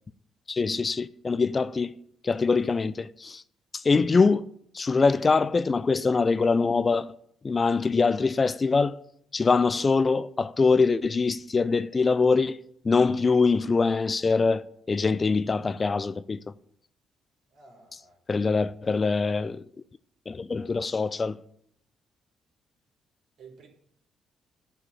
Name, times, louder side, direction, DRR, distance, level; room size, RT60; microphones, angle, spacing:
voice 1, 0.5-1.9 2.2-3.4 3.7-4.5 4.7-7.1 7.4-9.0 9.3-12.6 12.8-16.4 18.3-19.6 20.3-21.4, left 4 dB, 30° left, 0.4 m, -23 dB
voice 2, 17.5-18.2 23.4-23.7, right 5 dB, 65° right, 3.8 m, -51 dB
11.0 x 5.7 x 8.7 m
cardioid pair, 90°, 0 cm